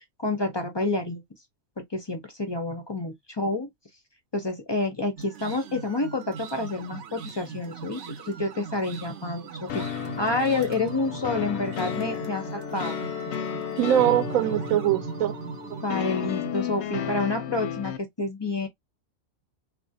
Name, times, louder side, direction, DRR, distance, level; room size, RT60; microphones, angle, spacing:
voice 1, 0.2-1.2 1.8-3.7 4.3-9.8 10.2-13.0 15.8-18.7, left 2 dB, 35° left, 0.4 m, -29 dB
sound 1, 5.2-17.2, right 6 dB, 65° right, 0.8 m, -40 dB
sound 2, 9.7-18.0, left 8 dB, 65° left, 0.7 m, -33 dB
voice 2, 13.8-15.4 15.7-16.3, right 12 dB, 90° right, 1.0 m, -24 dB
3.4 x 2.4 x 2.6 m
omnidirectional pair, 1.4 m